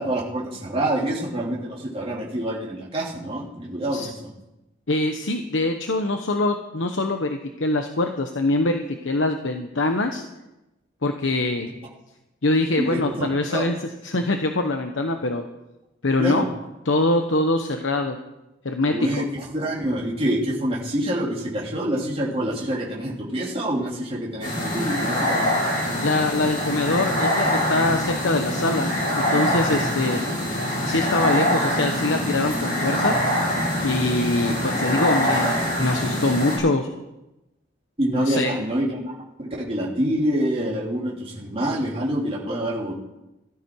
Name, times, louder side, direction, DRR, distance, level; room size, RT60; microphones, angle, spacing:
voice 1, 0.0-4.3 12.8-13.7 16.2-16.5 18.9-25.5 38.0-42.9, right 1 dB, 30° right, -4 dB, 3.2 m, -26 dB
voice 2, 4.9-10.2 11.0-11.7 12.4-13.8 14.0-15.4 16.0-16.4 16.8-18.2 18.6-19.3 26.0-28.9 29.3-30.2 30.8-33.1 33.8-36.9 38.1-38.6, left 2 dB, 80° left, 5 dB, 1.1 m, -23 dB
sound 1, 24.4-36.6, equal, 50° left, 7.3 m, -24 dB
16.5 x 13.0 x 4.7 m, 0.97 s
head